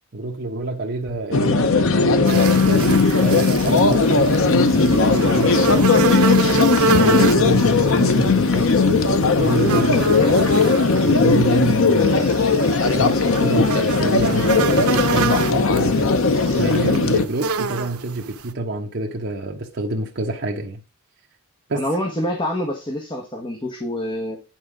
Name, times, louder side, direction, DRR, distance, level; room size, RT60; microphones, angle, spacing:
voice 1, 0.1-6.3 6.8-10.7 11.0-12.6 12.9-16.1 16.6-20.8 21.7-21.9, right 2 dB, 50° right, 1.1 m, -27 dB
sound 1, 1.3-17.3, left 3 dB, 60° left, 0.7 m, -17 dB
sound 2, 2.2-18.5, right 5 dB, 80° right, 0.8 m, -27 dB
voice 2, 21.7-24.4, left 1 dB, 20° left, 1.2 m, -26 dB
9.3 x 4.9 x 5.0 m
head